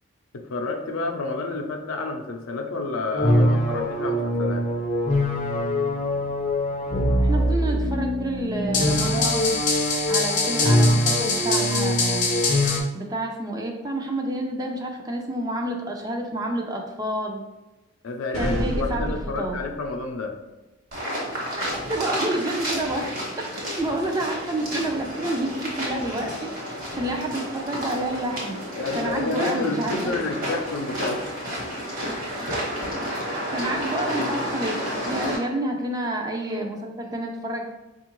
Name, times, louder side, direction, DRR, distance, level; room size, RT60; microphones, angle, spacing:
voice 1, 0.3-4.7 18.0-20.4 28.7-31.4 32.4-32.5 35.2-35.4, left 3 dB, 90° left, 4 dB, 0.5 m, -30 dB
sound 1, 3.1-12.8, left 1 dB, 35° left, 0.5 m, -22 dB
voice 2, 7.2-9.5 10.1-12.3 12.9-17.4 18.4-19.6 21.5-23.1 23.5-28.6 28.9-30.3 33.5-34.8 35.1-37.6, right 1 dB, 20° right, 2 dB, 0.3 m, -29 dB
sound 2, 18.3-20.0, equal, 80° right, 0.5 m, -29 dB
sound 3, 20.9-35.4, equal, 45° right, 1.0 m, -31 dB
4.3 x 2.4 x 2.9 m, 1.0 s
head